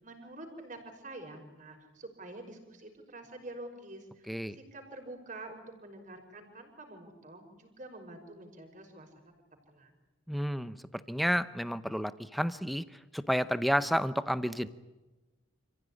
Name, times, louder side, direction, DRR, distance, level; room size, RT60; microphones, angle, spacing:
voice 1, 0.0-9.3 9.7-9.9, right 2 dB, 35° right, 3 dB, 5.5 m, -47 dB
voice 2, 10.3-10.8 11.1-12.8 13.1-14.7, equal, ahead, 14 dB, 0.8 m, -30 dB
27.5 x 15.5 x 10.0 m, 1.1 s
head